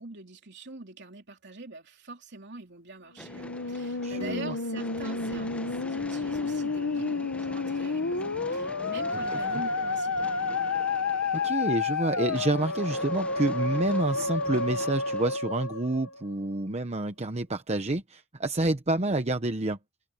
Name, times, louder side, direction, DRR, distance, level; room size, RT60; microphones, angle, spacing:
voice 1, 0.0-10.2, right 3 dB, 55° right, 3.4 m, -44 dB
Musical instrument, 3.2-16.5, left 4 dB, 85° left, 1.3 m, -30 dB
sound 1, 3.2-15.4, left 1 dB, 5° left, 0.8 m, -45 dB
voice 2, 4.0-4.5 9.3-9.6 11.4-19.8, right 2 dB, 30° right, 1.0 m, -28 dB
head